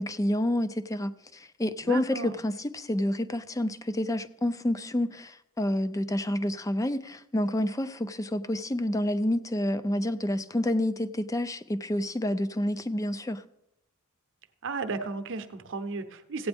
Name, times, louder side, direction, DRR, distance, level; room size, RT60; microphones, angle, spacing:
voice 1, 0.0-13.4, left 1 dB, 15° left, 0.4 m, -29 dB
voice 2, 1.8-2.3 14.6-16.5, right 4 dB, 55° right, 0.8 m, -34 dB
15.5 x 9.0 x 3.5 m
head